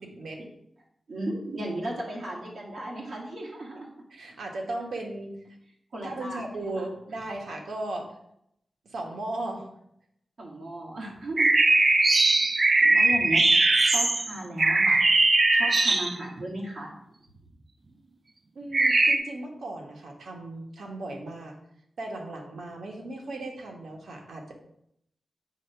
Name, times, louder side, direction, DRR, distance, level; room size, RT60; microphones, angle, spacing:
voice 1, 1.1-3.9 5.9-6.6 10.4-11.5 12.4-13.4 13.8-15.0 15.5-16.9, right 1 dB, 60° right, -4 dB, 2.3 m, -35 dB
voice 2, 4.1-5.6 6.0-8.1 8.8-9.7 12.1-12.3 12.9-13.0 18.5-21.5 22.0-24.6, right 2 dB, 80° right, 1 dB, 1.4 m, -37 dB
sound 1, 11.4-16.4 18.7-19.2, right 2 dB, 40° right, 0.6 m, -20 dB
7.4 x 3.4 x 5.8 m, 0.75 s
wide cardioid pair, 95°, 0 cm